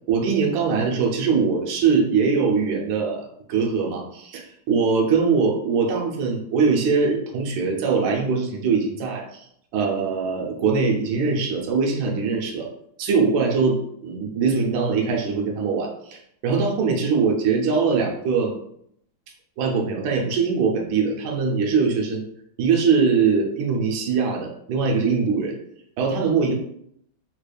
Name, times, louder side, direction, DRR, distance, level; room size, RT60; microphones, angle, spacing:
voice 1, 0.1-9.5 9.7-12.7 13.0-18.5 19.6-22.2 22.6-25.5 26.0-26.5, right 5 dB, 80° right, 0 dB, 1.5 m, -22 dB
3.7 x 3.3 x 2.3 m, 0.70 s
omnidirectional pair, 2.2 m